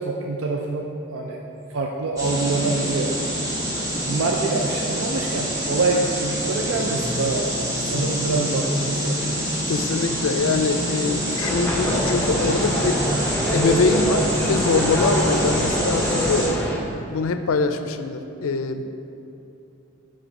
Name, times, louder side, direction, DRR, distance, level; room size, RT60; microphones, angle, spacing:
voice 1, 0.0-1.4 1.7-3.1 4.0-7.5 7.9-9.2, right 3 dB, 75° right, 0 dB, 0.5 m, -25 dB
sound 1, 2.2-16.5, equal, 15° right, 1.3 m, -26 dB
voice 2, 9.7-13.0 13.5-16.6 17.1-18.8, left 4 dB, 85° left, 9 dB, 0.4 m, -23 dB
sound 2, 11.4-16.8, equal, 10° left, 0.6 m, -25 dB
8.3 x 3.2 x 5.9 m, 2.8 s
head